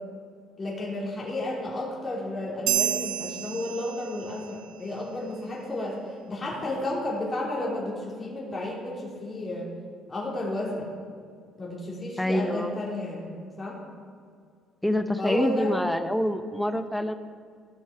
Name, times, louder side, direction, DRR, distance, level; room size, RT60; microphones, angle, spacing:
voice 1, 0.6-6.0 6.3-9.7 10.1-10.9 11.6-13.8 15.2-15.7, left 1 dB, 25° left, -4 dB, 2.6 m, -32 dB
sound 1, 2.7-4.5, right 12 dB, 85° right, 0.6 m, -29 dB
voice 2, 12.2-12.7 14.8-17.1, left 1 dB, 5° left, 9 dB, 0.7 m, -26 dB
15.5 x 6.2 x 4.8 m, 2.1 s
cardioid pair, 110°, 0 cm